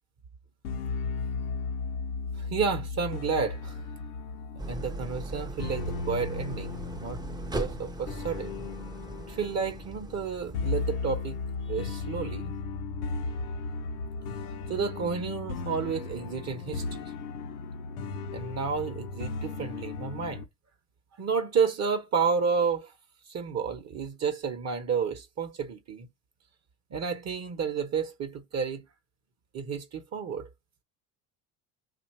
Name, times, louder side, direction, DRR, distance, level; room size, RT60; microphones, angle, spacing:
sound 1, 0.6-20.4, left 4 dB, 80° left, 0.8 m, -36 dB
voice 1, 2.4-3.8 4.7-8.7 9.3-11.4 11.6-12.5 14.7-17.0 18.3-20.4 21.2-22.9 23.3-26.1 26.9-28.8 29.5-30.5, right 6 dB, 35° right, 0.8 m, -31 dB
Idling, 4.6-11.6, right 2 dB, 10° right, 0.5 m, -39 dB
2.8 x 2.5 x 4.1 m
hypercardioid pair, 75°, 46 cm